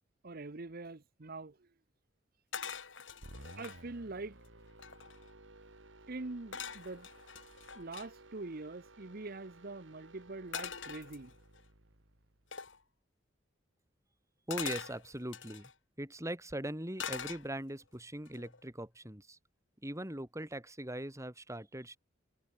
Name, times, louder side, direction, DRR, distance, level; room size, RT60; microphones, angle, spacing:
voice 1, 0.2-1.7 3.6-4.4 6.1-7.1 7.7-11.3, right 3 dB, 55° right, 1.0 m, -44 dB
sound 1, 2.5-3.8 4.4-4.5 4.7-5.3 6.5-8.1 10.5-11.6 12.5-12.8 14.5-15.7 17.0-17.8 18.3-18.6, left 7 dB, 85° left, 3.2 m, -43 dB
sound 2, 3.2-12.6, right 2 dB, 90° right, 3.3 m, -56 dB
voice 2, 14.5-15.7 16.0-19.4 19.8-22.0, right 1 dB, 15° right, 5.2 m, -40 dB
head